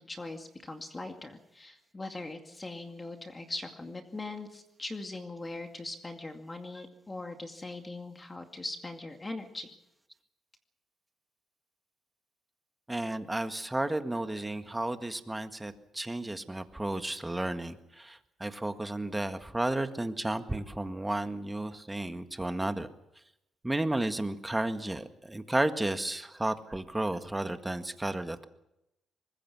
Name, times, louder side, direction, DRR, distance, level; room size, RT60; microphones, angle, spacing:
voice 1, 0.0-9.7, left 2 dB, 20° left, 5 dB, 2.3 m, -41 dB
voice 2, 12.9-22.9 23.6-28.4, right 1 dB, 10° right, 8 dB, 1.8 m, -33 dB
24.0 x 21.0 x 6.2 m, 0.86 s
cardioid pair, 90°, 0 cm